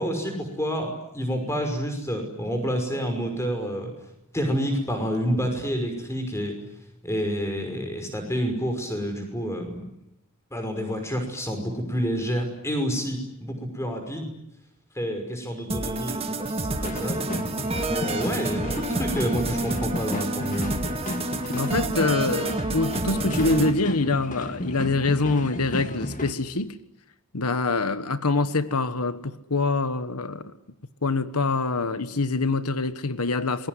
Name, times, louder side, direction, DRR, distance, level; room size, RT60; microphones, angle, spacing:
voice 1, 0.0-3.9 4.3-6.5 7.0-9.8 10.5-14.3 14.9-17.3 17.9-20.7, equal, 10° left, 5.8 m, -28 dB
sound 1, 15.7-23.7, right 2 dB, 25° right, 2.0 m, -29 dB
sound 2, 16.8-26.3, left 1 dB, 35° left, 2.4 m, -34 dB
voice 2, 21.5-26.8 27.3-30.4 31.0-33.7, left 3 dB, 90° left, 1.3 m, -25 dB
27.5 x 22.0 x 9.6 m
head